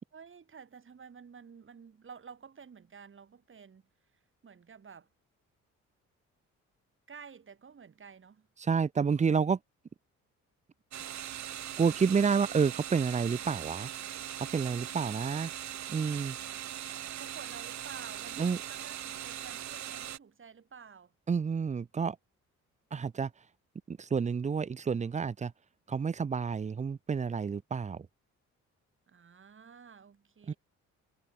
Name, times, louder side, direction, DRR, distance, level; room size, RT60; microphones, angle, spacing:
voice 1, 0.1-3.8 4.4-5.1 7.1-8.5 17.1-21.1 29.1-30.6, right 6 dB, 40° right, 5.6 m, -51 dB
voice 2, 8.6-9.6 11.8-13.9 14.5-15.5 15.9-16.4 18.4-18.6 21.3-22.2 22.9-23.3 23.9-25.5 25.9-28.1 30.5-30.6, right 6 dB, 25° right, 0.6 m, -29 dB
sound 1, 10.9-20.2, right 11 dB, 70° right, 2.7 m, -40 dB
cardioid pair, 90°, 30 cm